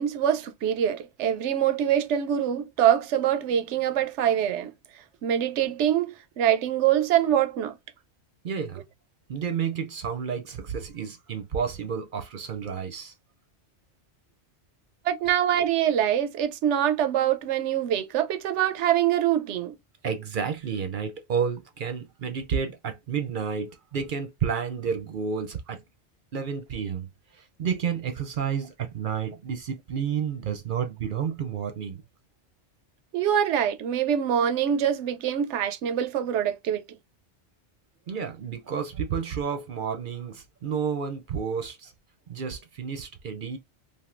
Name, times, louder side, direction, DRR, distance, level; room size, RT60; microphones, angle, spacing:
voice 1, 0.0-4.7 5.2-7.8 15.0-19.8 33.1-36.8, right 10 dB, 85° right, 0.9 m, -24 dB
voice 2, 8.4-8.8 9.3-13.1 20.0-25.8 26.3-27.1 27.6-32.0 38.1-41.9 42.3-43.6, right 7 dB, 55° right, 0.7 m, -30 dB
3.4 x 2.6 x 2.4 m
omnidirectional pair, 1.2 m